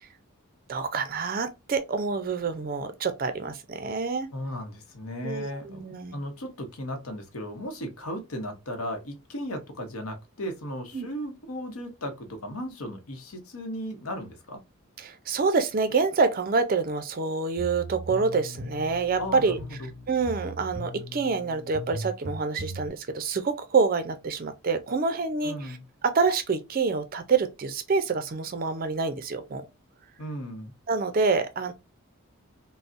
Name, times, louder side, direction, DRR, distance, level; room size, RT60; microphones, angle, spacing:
voice 1, 0.7-4.3 5.2-6.2 10.9-11.1 15.0-19.6 20.1-25.8 26.0-29.7 30.9-31.7, right 4 dB, 40° right, 0.4 m, -27 dB
voice 2, 4.3-5.9 6.1-14.6 19.2-19.9 25.4-25.8 30.2-30.7, equal, 75° left, 0.8 m, -36 dB
sound 1, 17.6-22.9, right 1 dB, 50° left, 1.3 m, -39 dB
3.8 x 2.0 x 2.5 m
head